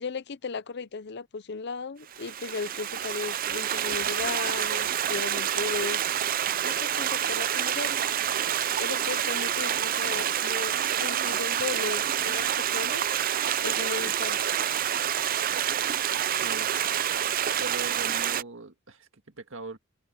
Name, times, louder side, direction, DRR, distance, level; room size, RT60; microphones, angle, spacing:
voice 1, 0.0-6.0 6.6-8.0 8.8-13.1 13.6-14.4, left 4 dB, 55° left, 0.6 m, -36 dB
Stream, 2.1-18.4, right 10 dB, 45° right, 0.5 m, -28 dB
voice 2, 16.3-16.7 17.6-19.8, right 2 dB, 70° right, 2.0 m, -40 dB
open air
head